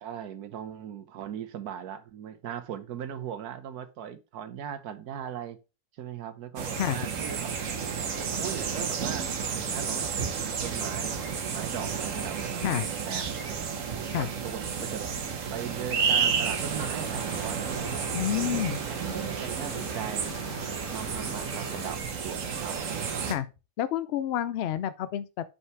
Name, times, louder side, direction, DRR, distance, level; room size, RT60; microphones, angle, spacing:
voice 1, 0.0-5.6 6.0-7.5 8.2-11.2 11.5-13.6 14.1-15.1 15.5-17.7 18.2-20.4 20.9-22.0 22.2-22.8, right 9 dB, 80° right, 1.4 m, -39 dB
sound 1, 6.6-23.3, right 6 dB, 60° right, 1.4 m, -31 dB
sound 2, 16.7-21.9, right 1 dB, 10° left, 2.3 m, -43 dB
voice 2, 18.1-18.8 23.3-23.5 23.8-25.5, left 11 dB, 75° left, 0.5 m, -29 dB
5.6 x 5.6 x 4.7 m
omnidirectional pair, 1.6 m